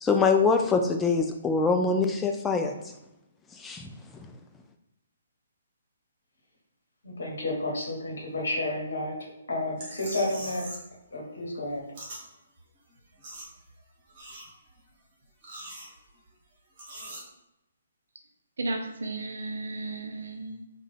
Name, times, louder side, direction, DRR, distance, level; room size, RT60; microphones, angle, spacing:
voice 1, 0.0-2.7 3.6-3.9, left 4 dB, 10° left, 4 dB, 0.3 m, -24 dB
voice 2, 7.0-10.7 11.1-11.8, left 2 dB, 65° left, -1 dB, 1.0 m, -31 dB
sound 1, 9.8-10.9 11.2-12.2 12.6-12.7 12.9-13.8 14.1-14.8 15.3-16.3 16.8-17.2, right 1 dB, 35° right, 1.1 m, -42 dB
voice 3, 18.6-20.6, right 2 dB, 65° right, 3 dB, 0.5 m, -34 dB
3.2 x 2.2 x 3.5 m, 0.87 s
figure-of-eight pair, 130°, 0 cm